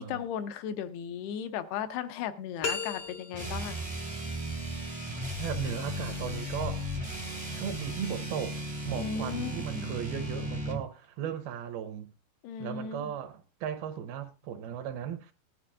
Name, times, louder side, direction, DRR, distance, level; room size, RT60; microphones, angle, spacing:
voice 1, 0.0-3.8 9.0-9.9 12.4-13.1, left 8 dB, 80° left, 2.9 m, -36 dB
sound 1, 2.6-3.7, left 4 dB, 65° left, 1.5 m, -35 dB
sound 2, 3.3-10.9, equal, 30° right, 0.5 m, -36 dB
voice 2, 5.4-6.9 7.5-12.1 12.6-15.3, right 9 dB, 75° right, 2.5 m, -36 dB
20.0 x 10.5 x 2.5 m
omnidirectional pair, 4.9 m